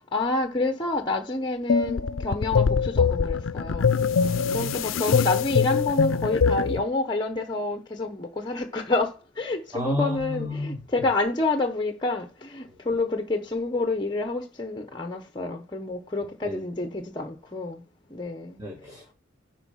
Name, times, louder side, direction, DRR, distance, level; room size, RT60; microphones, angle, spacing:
voice 1, 0.1-3.9 4.5-17.8 18.1-18.6, left 2 dB, 25° left, 0.9 m, -28 dB
sound 1, 1.7-6.8, left 5 dB, 85° left, 0.5 m, -23 dB
voice 2, 4.1-4.7 9.7-11.1 12.7-12.9 16.4-16.6 18.6-19.1, left 1 dB, 15° right, 2.2 m, -33 dB
11.0 x 4.5 x 5.7 m
head